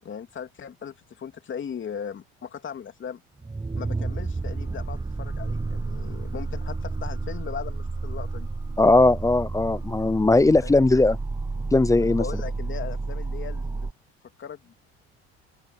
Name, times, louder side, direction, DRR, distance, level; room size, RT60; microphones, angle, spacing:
voice 1, 0.0-3.2 3.8-8.5 10.6-10.8 12.0-13.9 14.4-14.7, left 7 dB, 40° left, 3.1 m, -38 dB
sound 1, 3.4-13.9, right 3 dB, 15° right, 0.9 m, -31 dB
voice 2, 8.8-11.2 11.7-12.2, left 2 dB, 10° left, 0.6 m, -19 dB
open air
supercardioid pair, 90°, 30 cm